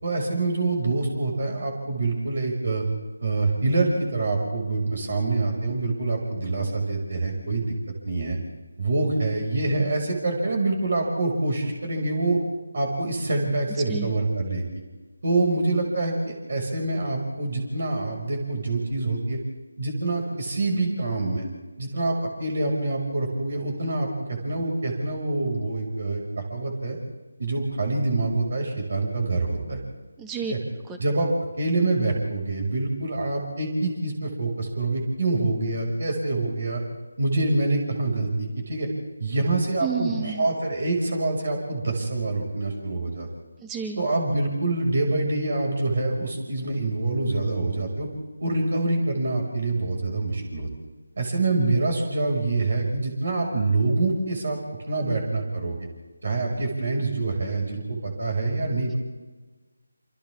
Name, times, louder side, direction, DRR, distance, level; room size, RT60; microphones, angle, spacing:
voice 1, 0.0-2.8 3.2-7.7 8.0-8.4 8.8-12.4 12.7-14.6 15.2-19.4 19.8-21.5 21.8-27.0 27.4-29.8 30.5-30.6 31.0-31.3 31.6-36.8 37.2-38.9 39.2-43.3 44.0-48.1 48.4-50.7 51.2-54.6 54.9-55.9 56.2-58.9, right 2 dB, 55° right, 1 dB, 5.8 m, -26 dB
voice 2, 30.2-30.5 30.9-31.0 39.8-40.5 43.6-44.0, right 6 dB, 10° right, 4 dB, 1.9 m, -30 dB
28.0 x 26.5 x 3.7 m, 1.3 s
figure-of-eight pair, 160°, 0 cm